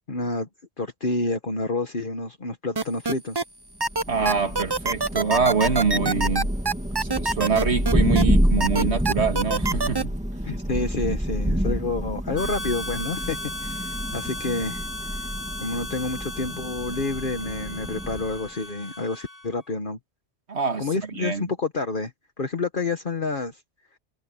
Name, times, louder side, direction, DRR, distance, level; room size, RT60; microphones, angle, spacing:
voice 1, 0.1-0.5 0.8-3.4 10.4-14.8 15.6-20.0 20.8-22.1 22.4-23.6, left 3 dB, 50° left, 1.5 m, -29 dB
sound 1, 2.8-3.4 3.8-8.2 8.6-10.0, right 3 dB, 25° right, 0.8 m, -24 dB
Thunder, 3.9-18.5, equal, 5° right, 2.2 m, -28 dB
voice 2, 4.1-6.5 7.0-10.2 20.5-21.4, right 5 dB, 75° right, 2.3 m, -25 dB
Harmonica, 12.3-19.6, left 1 dB, 85° left, 5.2 m, -36 dB
omnidirectional pair, 1.1 m